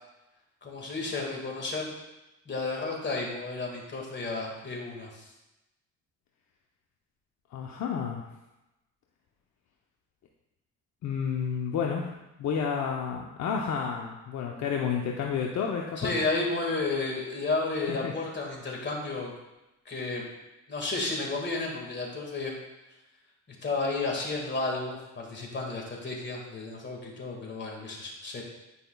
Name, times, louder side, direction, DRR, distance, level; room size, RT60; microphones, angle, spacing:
voice 1, 0.6-1.9 2.5-5.3 16.0-19.3 19.9-20.2 20.7-22.5 23.6-28.4, left 3 dB, 35° left, -1 dB, 1.9 m, -32 dB
voice 2, 7.5-8.2 11.0-12.1 12.4-16.1 17.9-18.1, left 6 dB, 65° left, 0 dB, 0.7 m, -30 dB
10.0 x 5.3 x 2.3 m, 0.99 s
cardioid pair, 90°, 30 cm